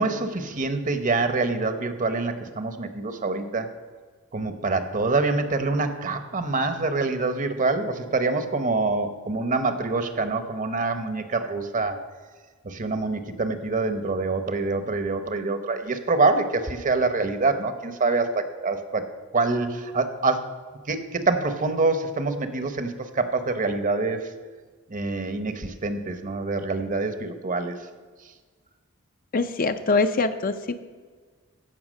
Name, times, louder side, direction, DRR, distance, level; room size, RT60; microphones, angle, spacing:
voice 1, 0.0-3.7 4.3-12.0 12.6-19.0 19.3-20.4 20.9-24.2 24.9-27.7, right 3 dB, 35° right, 9 dB, 0.9 m, -25 dB
voice 2, 29.3-30.8, left 3 dB, 40° left, 9 dB, 0.5 m, -23 dB
15.0 x 5.7 x 6.3 m, 1.5 s
head